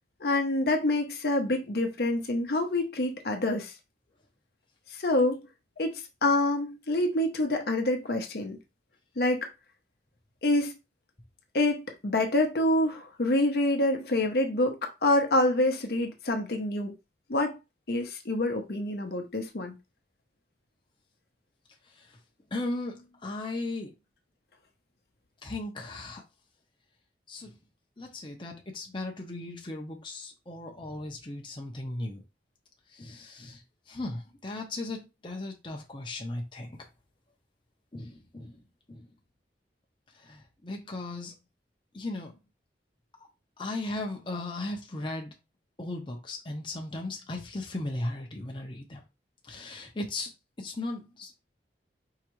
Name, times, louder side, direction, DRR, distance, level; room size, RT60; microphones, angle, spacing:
voice 1, 0.2-3.7 4.9-5.4 5.8-5.9 6.2-8.6 9.2-9.5 10.4-10.7 11.5-17.0 17.3-17.6 17.9-19.8, left 1 dB, 60° left, 0.8 m, -26 dB
voice 2, 22.5-23.9 25.4-26.2 27.3-27.5 28.0-32.2 32.9-33.6 33.9-36.8 37.9-38.6 38.9-39.1 40.2-41.3 41.9-42.3 43.6-45.4 45.8-49.0 49.5-50.3 50.6-51.3, left 2 dB, 25° left, 0.8 m, -37 dB
4.7 x 3.2 x 3.1 m
head